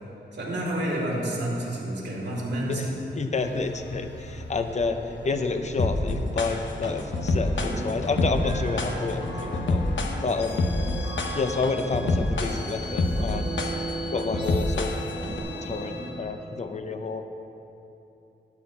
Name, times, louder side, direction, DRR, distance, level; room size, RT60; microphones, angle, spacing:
voice 1, 0.3-3.0, right 1 dB, 70° right, -4 dB, 2.4 m, -29 dB
voice 2, 3.1-9.8 10.2-10.7 11.3-13.7 14.1-14.9 15.3-17.2, left 4 dB, 40° left, 7 dB, 0.6 m, -29 dB
sound 1, 3.4-16.1, left 2 dB, 65° left, 1.4 m, -39 dB
sound 2, 5.8-15.4, left 2 dB, 85° left, 0.9 m, -27 dB
sound 3, 6.8-16.4, right 3 dB, 25° right, 0.5 m, -37 dB
13.0 x 4.4 x 8.5 m, 2.9 s
wide cardioid pair, 165°, 19 cm